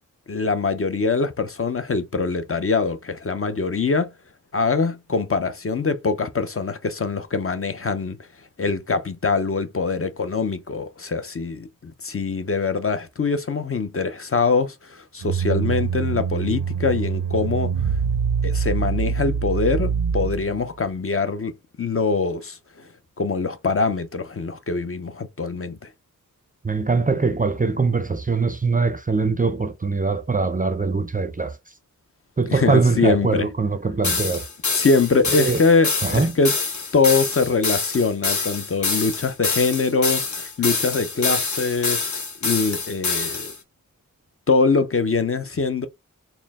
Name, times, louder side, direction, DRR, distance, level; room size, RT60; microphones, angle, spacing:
voice 1, 0.3-4.1 4.5-8.2 8.6-17.7 18.4-21.5 21.8-22.6 23.2-25.8 32.5-33.5 34.7-36.6 36.9-42.0 42.4-43.5 44.5-45.9, left 4 dB, 40° left, 0.5 m, -23 dB
sound 1, 15.2-20.7, right 6 dB, 85° right, 0.5 m, -24 dB
voice 2, 26.6-31.5 32.4-34.4 35.4-35.6 36.0-36.3, right 4 dB, 25° right, 0.4 m, -22 dB
sound 2, 34.0-43.6, left 4 dB, 55° left, 0.9 m, -26 dB
4.3 x 2.0 x 3.4 m
wide cardioid pair, 75°, 34 cm